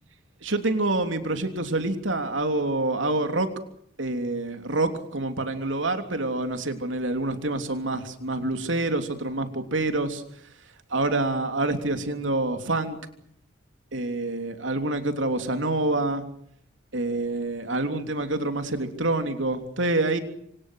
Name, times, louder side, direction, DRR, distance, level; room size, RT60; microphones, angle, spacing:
voice 1, 0.4-3.5 4.0-10.2 10.9-13.0 13.9-16.3 16.9-20.2, right 2 dB, 75° right, 7 dB, 3.2 m, -27 dB
28.0 x 26.0 x 6.5 m, 0.70 s
head